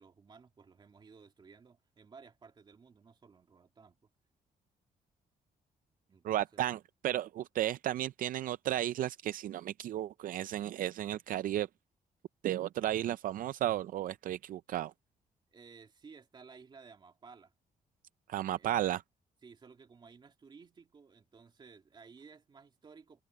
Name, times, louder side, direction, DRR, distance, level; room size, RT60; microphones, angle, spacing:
voice 1, 0.0-4.0 6.1-6.8 15.5-17.5 18.5-18.9 19.4-23.2, right 5 dB, 30° right, 2.5 m, -56 dB
voice 2, 6.2-11.7 12.4-14.9 18.3-19.0, right 12 dB, 70° right, 0.4 m, -34 dB
wide cardioid pair, 180°, 15 cm